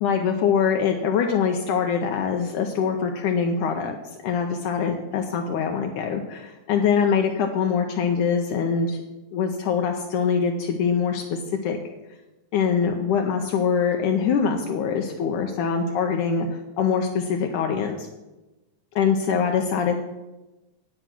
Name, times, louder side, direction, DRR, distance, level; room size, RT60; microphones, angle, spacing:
voice 1, 0.0-4.0 4.2-9.0 9.3-11.8 12.5-18.1 19.0-20.0, left 6 dB, 75° left, 3 dB, 2.0 m, -23 dB
10.0 x 8.8 x 6.0 m, 1.1 s
omnidirectional pair, 4.1 m